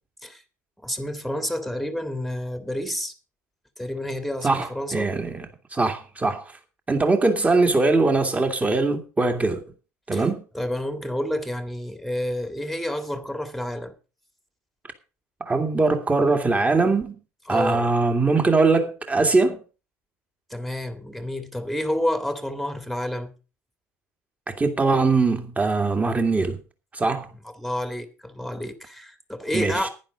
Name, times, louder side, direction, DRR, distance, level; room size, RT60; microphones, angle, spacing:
voice 1, 0.8-3.1 3.8-5.1 10.1-10.3 10.5-13.9 17.5-17.9 20.5-23.3 27.5-29.9, left 1 dB, ahead, 1.9 m, -29 dB
voice 2, 4.4-5.5 5.7-6.5 6.9-9.6 10.1-10.4 15.4-17.2 17.5-19.6 24.5-26.6 26.9-27.3 29.4-29.9, right 3 dB, 15° right, 2.3 m, -21 dB
10.5 x 10.5 x 5.1 m
figure-of-eight pair, 70°, 9 cm